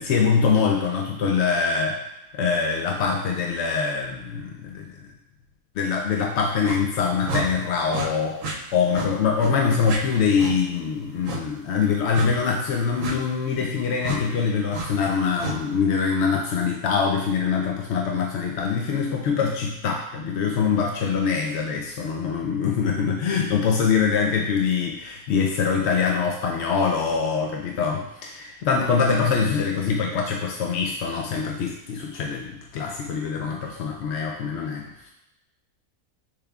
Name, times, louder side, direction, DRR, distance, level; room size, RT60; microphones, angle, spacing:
voice 1, 0.0-2.0 2.3-4.9 5.8-8.4 8.7-35.1, left 5 dB, 75° left, 0 dB, 0.6 m, -24 dB
sound 1, 6.6-6.8 7.3-7.5 7.9-8.1 8.4-8.6 8.9-9.1 9.4-9.5 9.8-10.0 10.4-10.5 11.2-11.4 12.1-12.3 13.0-13.1 14.0-14.2 14.7-14.9 15.4-15.6, right 3 dB, 65° right, 1.0 m, -30 dB
6.8 x 3.4 x 2.3 m, 0.90 s
omnidirectional pair, 1.6 m